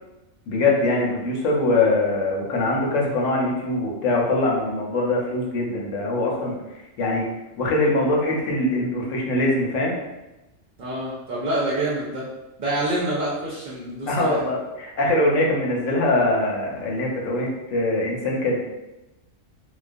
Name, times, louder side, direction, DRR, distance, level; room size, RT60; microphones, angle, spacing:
voice 1, 0.5-6.6 7.0-7.3 7.6-10.0 14.1-18.6, left 2 dB, 90° left, -2 dB, 1.0 m, -22 dB
voice 2, 10.8-12.3 12.6-14.4, right 1 dB, 55° right, -7 dB, 0.6 m, -27 dB
2.3 x 2.3 x 2.5 m, 1.0 s
omnidirectional pair, 1.3 m